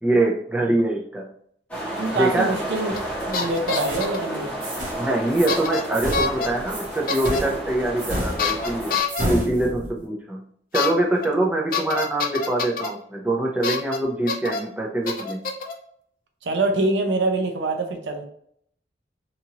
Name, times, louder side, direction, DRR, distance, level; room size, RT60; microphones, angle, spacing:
voice 1, 0.0-1.3 2.1-2.6 5.0-9.0 9.3-10.4 10.7-15.4, right 1 dB, 10° right, -1 dB, 0.4 m, -24 dB
sound 1, 1.7-9.0, right 1 dB, 10° left, 0.8 m, -32 dB
voice 2, 2.0-2.9 3.3-4.5 16.4-18.2, right 2 dB, 80° right, 4 dB, 0.5 m, -24 dB
sound 2, 2.9-3.1 3.3-4.2 5.5-5.8 6.1-6.5 7.1-7.4 8.4-9.2 10.7-10.9 11.2-11.3 11.7-12.9 13.6-14.0 14.3-14.6 15.1-15.7, left 5 dB, 50° left, 0.4 m, -26 dB
sound 3, 2.9-3.3 3.7-4.1 4.6-5.0 5.3-5.6 5.9-10.0, equal, 45° right, 0.9 m, -31 dB
2.8 x 2.4 x 2.8 m, 0.67 s
head